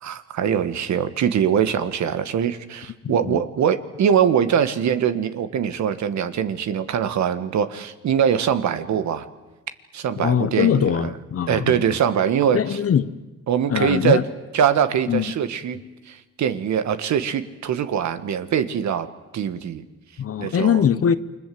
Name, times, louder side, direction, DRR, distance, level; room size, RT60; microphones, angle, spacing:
voice 1, 0.0-9.3 9.9-11.1 11.5-12.8 13.5-14.2 14.5-15.8 16.1-19.1 19.3-19.8 20.4-20.8, right 8 dB, 65° right, 1.6 m, -22 dB
voice 2, 3.0-3.4 10.2-11.8 12.5-13.1 13.7-14.2 15.1-15.3 20.2-21.1, left 8 dB, 50° left, 1.1 m, -21 dB
28.5 x 22.0 x 7.7 m
cardioid pair, 90°, 30 cm